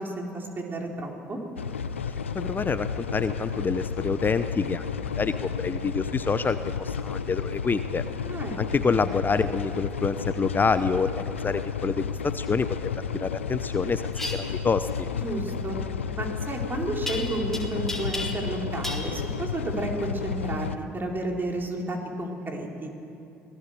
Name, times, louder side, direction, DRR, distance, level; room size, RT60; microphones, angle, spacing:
voice 1, 0.0-1.4 8.2-8.9 15.2-15.8 16.2-22.9, right 2 dB, 30° right, 1 dB, 4.7 m, -32 dB
sound 1, 1.6-20.8, left 6 dB, 90° left, 0.7 m, -32 dB
voice 2, 2.3-8.0 8.6-12.9 13.2-14.0 14.3-15.1, left 5 dB, 30° left, 12 dB, 0.8 m, -27 dB
sound 2, 14.1-14.4 17.1-17.6 17.9-18.6 18.8-19.1, left 2 dB, 5° left, 4.0 m, -33 dB
25.5 x 18.0 x 6.8 m, 2.8 s
figure-of-eight pair, 55°, 7 cm